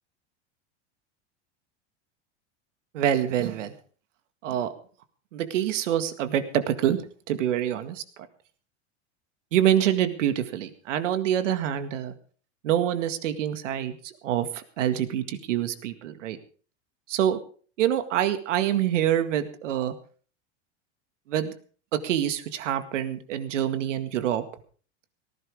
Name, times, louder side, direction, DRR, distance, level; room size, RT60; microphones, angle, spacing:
voice 1, 2.9-3.7 4.4-4.7 5.3-7.0 7.3-8.0 9.5-12.1 12.6-16.4 17.1-17.4 17.8-19.9 21.3-21.5 21.9-24.4, right 10 dB, 85° right, 9 dB, 2.0 m, -26 dB
18.5 x 16.0 x 3.6 m, 0.41 s
supercardioid pair, 115°, 36 cm